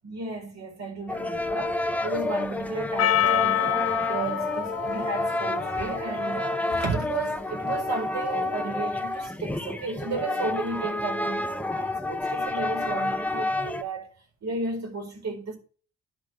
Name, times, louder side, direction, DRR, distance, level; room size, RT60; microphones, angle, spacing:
voice 1, 0.0-14.1 14.4-15.5, right 3 dB, 60° right, 4.3 m, -33 dB
sound 1, 1.1-13.8, left 2 dB, 5° left, 0.8 m, -29 dB
Percussion, 3.0-7.3, left 12 dB, 55° left, 0.6 m, -28 dB
10.5 x 4.9 x 7.7 m
cardioid pair, 90°, 30 cm